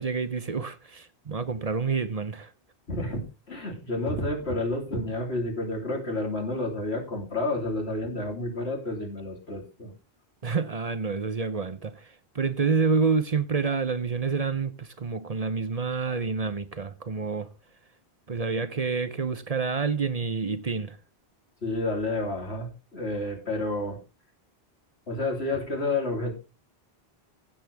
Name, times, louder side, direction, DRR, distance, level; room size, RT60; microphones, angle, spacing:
voice 1, 0.0-2.5 10.4-17.5 18.3-21.0, right 5 dB, 40° right, 0.8 m, -28 dB
voice 2, 2.9-3.2 3.5-9.9 21.6-24.0 25.1-26.3, left 2 dB, 85° left, 3.5 m, -30 dB
15.5 x 7.8 x 3.4 m
omnidirectional pair, 1.1 m